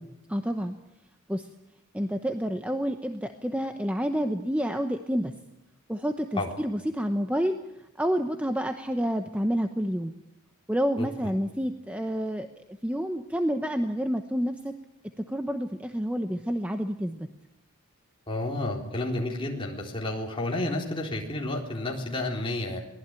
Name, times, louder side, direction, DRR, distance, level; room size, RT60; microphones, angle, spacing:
voice 1, 0.3-0.8 1.3-1.5 1.9-5.3 5.9-7.6 8.0-10.1 10.7-12.5 12.8-14.7 15.2-17.3, equal, 5° right, 6 dB, 0.9 m, -29 dB
voice 2, 18.3-22.8, left 2 dB, 25° left, -1 dB, 4.0 m, -30 dB
23.0 x 19.0 x 9.1 m, 0.94 s
head